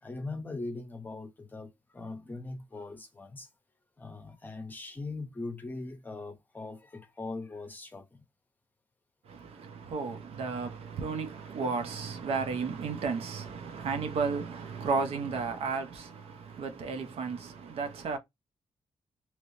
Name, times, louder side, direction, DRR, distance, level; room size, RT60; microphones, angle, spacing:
voice 1, 0.0-1.7 1.9-3.5 4.0-8.2 11.0-11.1 16.1-16.5, left 3 dB, 15° left, 0.7 m, -40 dB
voice 2, 9.3-18.2, right 5 dB, 70° right, 0.8 m, -33 dB
3.3 x 3.0 x 2.7 m
wide cardioid pair, 175°, 10 cm